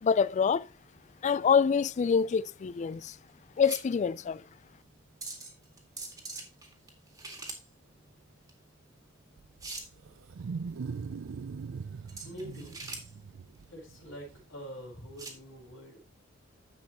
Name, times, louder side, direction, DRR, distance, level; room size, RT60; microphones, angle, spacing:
voice 1, 0.0-0.7 1.2-3.2 3.6-4.4, left 6 dB, 35° left, 0.3 m, -26 dB
sound 1, 0.7-15.4, right 3 dB, 20° right, 2.0 m, -47 dB
Wild animals, 9.4-14.4, right 5 dB, 70° right, 0.4 m, -41 dB
voice 2, 12.2-12.8 13.7-16.1, equal, 80° left, 3.9 m, -45 dB
10.5 x 7.4 x 3.0 m
head